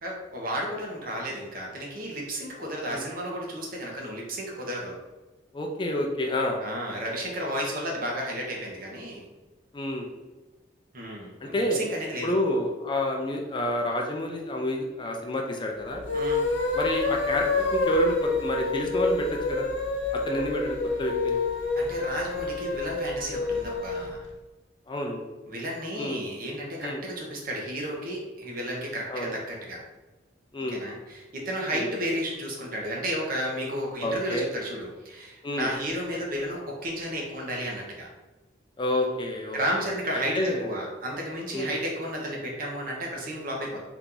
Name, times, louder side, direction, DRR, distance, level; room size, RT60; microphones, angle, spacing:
voice 1, 0.0-4.9 6.6-9.3 10.9-12.3 16.1-16.4 21.8-24.2 25.5-29.8 30.7-38.1 39.5-43.8, equal, 50° right, -1 dB, 0.8 m, -33 dB
voice 2, 5.5-6.6 9.7-10.1 11.4-11.8 12.2-16.0 16.7-19.6 20.1-21.4 24.9-25.2 26.0-26.2 26.8-27.0 29.1-29.4 30.5-30.8 31.7-31.9 34.0-34.5 35.4-35.7 38.8-39.6 40.1-40.7 41.5-41.7, left 1 dB, 25° left, 1 dB, 0.4 m, -29 dB
sound 1, 16.0-24.1, left 3 dB, 85° left, 0.5 m, -28 dB
2.9 x 2.5 x 3.7 m, 1.2 s
head